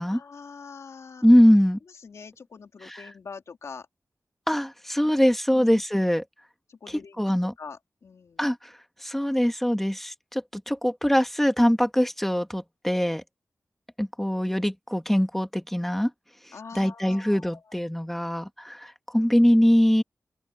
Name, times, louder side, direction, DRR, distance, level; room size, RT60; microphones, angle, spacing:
voice 1, 0.1-1.3 2.0-3.9 5.0-5.2 6.7-7.2 7.6-8.4 16.5-17.8, left 5 dB, 80° left, 3.0 m, -44 dB
voice 2, 1.2-1.8 2.8-3.0 4.5-6.2 7.2-7.5 8.4-8.7 9.0-13.2 14.0-16.1 16.7-20.0, equal, 5° left, 1.5 m, -22 dB
open air
wide cardioid pair, 105°, 5 cm